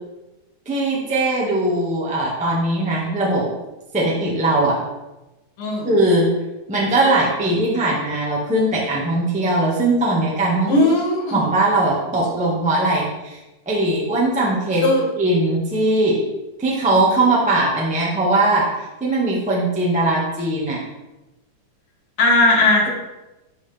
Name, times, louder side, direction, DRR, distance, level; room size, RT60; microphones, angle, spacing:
voice 1, 0.6-3.4 3.9-4.8 5.8-6.3 6.7-10.7 11.3-13.4 13.6-14.8 15.2-16.2 16.6-18.7 19.0-20.8, right 2 dB, 5° right, -5 dB, 0.8 m, -20 dB
voice 2, 5.6-5.9 10.7-11.4 14.8-15.0 22.2-22.9, left 2 dB, 75° left, -4 dB, 3.4 m, -17 dB
11.5 x 4.2 x 3.5 m, 1.0 s
omnidirectional pair, 3.7 m